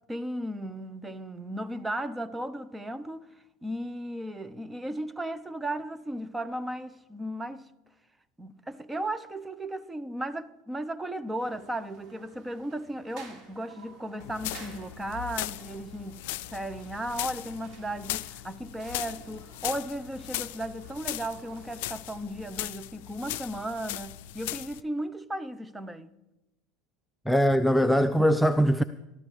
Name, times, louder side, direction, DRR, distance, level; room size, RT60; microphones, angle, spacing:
voice 1, 0.1-3.3 3.6-7.7 8.4-16.2 16.5-26.1, right 1 dB, 10° right, 0.8 m, -35 dB
sound 1, 11.4-22.5, right 3 dB, 45° right, 4.3 m, -53 dB
sound 2, 14.2-24.8, left 17 dB, 70° left, 0.4 m, -38 dB
voice 2, 27.3-28.8, equal, 5° left, 0.5 m, -21 dB
23.0 x 13.5 x 3.3 m
hypercardioid pair, 85°, 0 cm